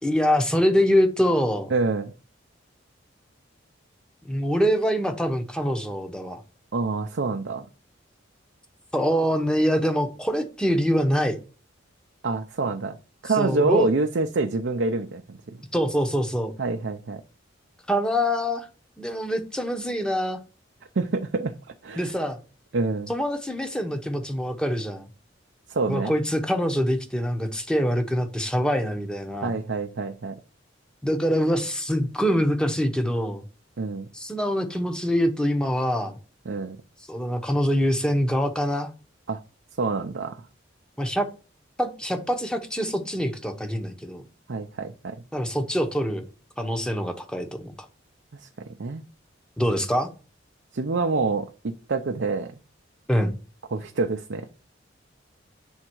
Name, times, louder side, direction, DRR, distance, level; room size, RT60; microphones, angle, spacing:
voice 1, 0.0-1.7 4.2-6.4 8.9-11.4 13.2-13.9 15.7-16.5 17.9-18.7 19.0-20.4 22.0-22.4 23.1-25.1 25.9-29.6 31.0-33.4 34.1-36.1 37.1-38.9 41.0-41.3 41.8-44.2 45.3-46.2 46.6-47.7 49.6-50.1 53.1-53.4, equal, 5° left, 0.9 m, -24 dB
voice 2, 1.7-2.1 6.7-7.7 12.2-13.0 13.2-15.6 16.6-17.2 21.0-21.5 21.8-22.1 22.7-23.1 25.7-26.2 29.4-30.4 33.8-34.1 36.5-36.8 39.3-39.4 39.8-40.4 44.5-45.2 48.3-49.0 50.7-52.5 53.7-54.5, right 3 dB, 65° right, 0.6 m, -27 dB
8.8 x 3.6 x 4.5 m
head